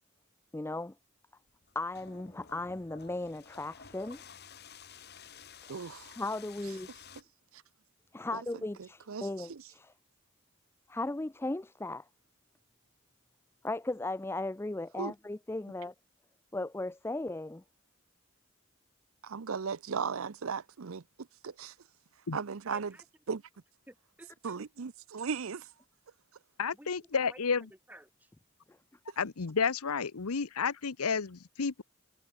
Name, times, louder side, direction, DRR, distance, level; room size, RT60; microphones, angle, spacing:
voice 1, 0.5-0.9 1.8-4.2 6.2-6.9 8.1-9.9 10.9-12.0 13.6-15.9 16.5-17.6, left 2 dB, 10° left, 0.4 m, -36 dB
sound 1, 1.5-7.2, left 7 dB, 50° left, 2.9 m, -53 dB
voice 2, 5.7-6.2 7.5-7.6 8.3-8.4 8.8-9.6 15.0-15.1 19.2-21.0 21.4-21.7 22.3-22.9 23.3-23.4 24.4-25.7, right 5 dB, 65° right, 0.6 m, -37 dB
voice 3, 22.7-23.1 23.9-24.6 26.7-28.3, right 1 dB, 5° right, 5.3 m, -55 dB
voice 4, 26.6-27.6 29.2-31.8, left 5 dB, 80° left, 0.8 m, -31 dB
head